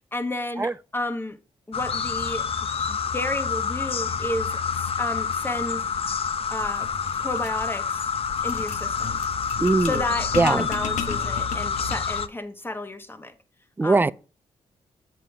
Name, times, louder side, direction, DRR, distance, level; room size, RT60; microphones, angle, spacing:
voice 1, 0.1-1.4 1.7-2.5 2.9-5.9 6.5-6.9 7.2-8.1 8.4-9.2 9.8-13.3 13.8-14.1, left 1 dB, 15° left, 1.2 m, -32 dB
sound 1, 1.7-12.3, left 6 dB, 50° left, 0.7 m, -28 dB
sound 2, 6.5-12.2, left 5 dB, 85° left, 1.1 m, -36 dB
voice 2, 9.6-10.0 10.3-10.7 13.8-14.1, right 3 dB, 15° right, 0.4 m, -20 dB
7.5 x 5.6 x 4.6 m
cardioid pair, 70°, 12 cm